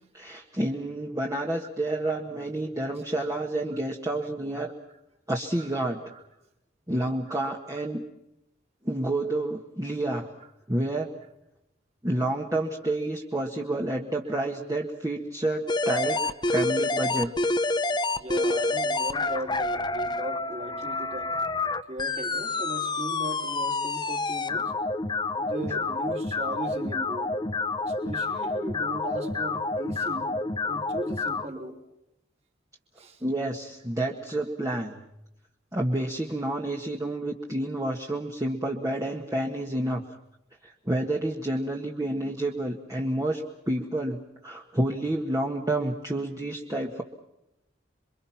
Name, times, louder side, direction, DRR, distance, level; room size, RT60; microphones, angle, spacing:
voice 1, 0.1-4.7 5.3-6.0 6.9-8.0 8.8-10.3 10.7-11.1 12.0-16.2 16.5-17.3 33.2-35.0 35.7-40.0 40.8-47.0, right 1 dB, 15° right, 0 dB, 1.6 m, -29 dB
sound 1, 15.7-31.4, left 3 dB, 25° left, 0.9 m, -28 dB
voice 2, 18.2-21.3 21.9-24.7 25.4-27.3 27.8-30.3 30.7-31.8 33.0-33.2 34.3-34.4, right 1 dB, 35° right, 2 dB, 3.5 m, -37 dB
28.0 x 23.5 x 5.8 m, 0.86 s
head